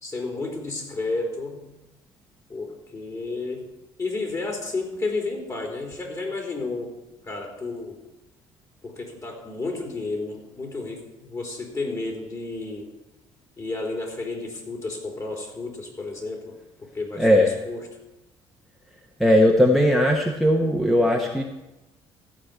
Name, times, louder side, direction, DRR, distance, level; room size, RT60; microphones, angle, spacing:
voice 1, 0.0-1.6 2.5-3.7 4.0-6.9 7.2-8.0 8.8-12.9 13.6-17.8, left 3 dB, 30° left, 1 dB, 3.6 m, -32 dB
voice 2, 17.2-17.5 19.2-21.4, equal, ahead, 1 dB, 1.2 m, -18 dB
14.5 x 4.9 x 8.2 m, 1.0 s
cardioid pair, 95°, 10 cm